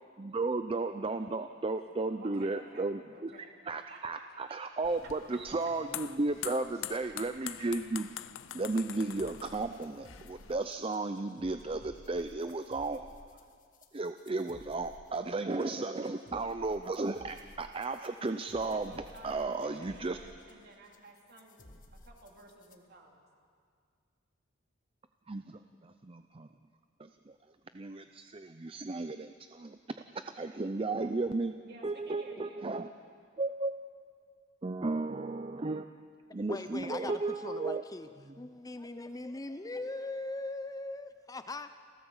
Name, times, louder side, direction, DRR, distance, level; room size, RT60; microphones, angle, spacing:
voice 1, 0.2-3.3 3.7-8.1 8.5-13.0 13.9-18.9 19.2-20.2 25.3-26.5 27.0-27.1 27.7-29.8 30.4-31.5 31.8-32.9 33.4-33.7 34.6-35.9 36.3-37.8, right 3 dB, 30° right, 9 dB, 0.5 m, -34 dB
voice 2, 2.0-3.5 3.9-4.2 6.7-6.9 18.7-21.6 22.0-23.2 31.6-32.6, right 2 dB, 55° right, 0 dB, 3.0 m, -53 dB
sound 1, 4.8-10.6, left 12 dB, 85° left, 0.6 m, -44 dB
sound 2, 8.4-22.8, left 1 dB, 45° left, 1.5 m, -56 dB
voice 3, 36.3-38.1 38.4-41.7, left 2 dB, 20° left, 10 dB, 0.6 m, -40 dB
29.5 x 13.5 x 7.2 m, 2.1 s
head